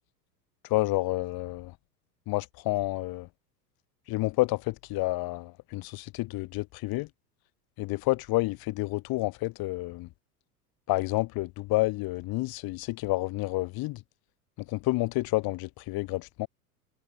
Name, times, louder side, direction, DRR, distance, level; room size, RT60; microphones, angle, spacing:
voice 1, 0.7-1.7 2.3-3.3 4.1-7.1 7.8-10.1 10.9-14.0 14.7-16.5, left 20 dB, 45° left, 5.4 m, -29 dB
figure-of-eight pair, 85°, 49 cm